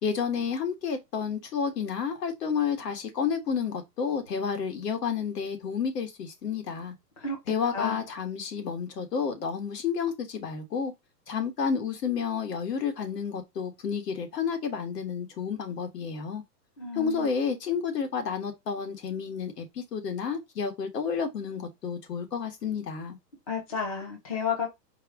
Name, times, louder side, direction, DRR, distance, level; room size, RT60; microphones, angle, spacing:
voice 1, 0.0-6.9 7.5-10.9 11.3-16.4 16.9-23.2, left 6 dB, 75° left, 1.7 m, -30 dB
voice 2, 16.8-17.3 23.5-24.7, left 5 dB, 25° left, 0.6 m, -32 dB
4.6 x 2.2 x 4.7 m
supercardioid pair, 180°, 49 cm